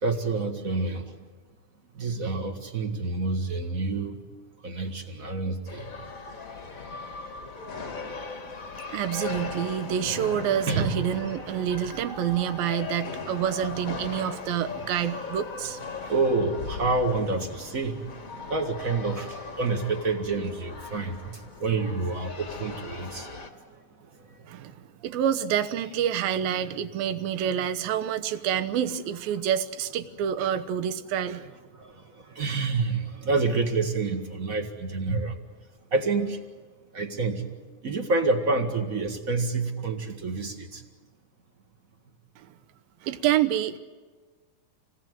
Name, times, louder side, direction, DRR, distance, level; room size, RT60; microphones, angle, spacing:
voice 1, 0.0-1.1 1.9-4.2 4.6-5.9 10.7-11.0 16.1-18.2 18.5-24.7 31.7-35.4 35.9-36.4 36.9-37.5 37.8-40.8, right 3 dB, 35° right, 5 dB, 1.4 m, -28 dB
sound 1, 5.7-23.5, left 4 dB, 40° left, 1.2 m, -38 dB
voice 2, 8.9-16.1 24.5-24.7 25.0-31.5 42.4-42.5 43.0-43.8, right 10 dB, 75° right, 11 dB, 2.8 m, -28 dB
28.0 x 18.5 x 9.4 m, 1.4 s
omnidirectional pair, 4.3 m